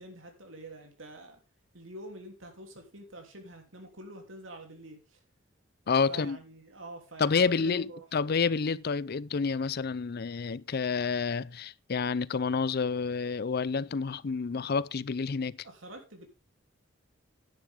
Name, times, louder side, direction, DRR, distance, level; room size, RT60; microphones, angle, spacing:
voice 1, 0.0-1.4 1.7-5.2 6.1-8.1 15.6-16.3, right 1 dB, 75° right, 3.2 m, -46 dB
voice 2, 5.9-6.4 7.2-15.6, left 5 dB, 50° left, 0.5 m, -29 dB
11.5 x 10.5 x 3.7 m
head